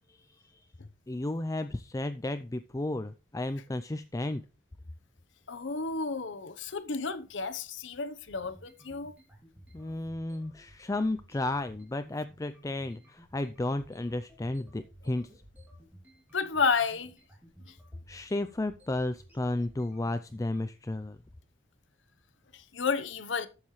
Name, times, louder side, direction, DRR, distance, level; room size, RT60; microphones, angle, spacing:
voice 1, 1.1-4.4 9.7-15.3 18.1-21.2, left 2 dB, 15° left, 0.4 m, -33 dB
sound 1, 5.4-20.6, right 1 dB, 10° right, 2.7 m, -57 dB
voice 2, 5.5-9.1 16.3-17.1 22.5-23.5, left 5 dB, 75° left, 0.9 m, -31 dB
13.0 x 7.4 x 3.2 m
head